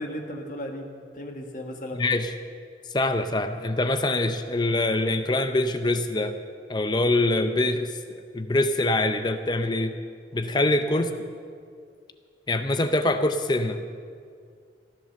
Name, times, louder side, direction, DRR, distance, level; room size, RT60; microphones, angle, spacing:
voice 1, 0.0-2.0 10.9-11.1, equal, 45° left, 2 dB, 1.7 m, -36 dB
voice 2, 2.0-2.3 2.9-6.3 6.7-10.0 10.3-11.1 12.5-13.8, left 2 dB, 25° left, 9 dB, 0.5 m, -24 dB
15.5 x 11.0 x 6.8 m, 2.2 s
head